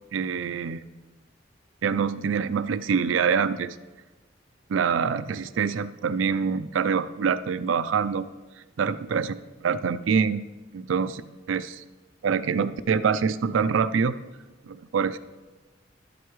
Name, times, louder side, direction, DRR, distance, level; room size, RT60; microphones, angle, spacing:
voice 1, 0.1-0.8 1.8-3.8 4.7-8.3 8.8-9.3 9.6-10.4 10.7-11.2 11.5-11.8 12.2-14.2 14.6-15.2, right 6 dB, 90° right, 14 dB, 0.4 m, -25 dB
11.0 x 7.9 x 3.1 m, 1.2 s
head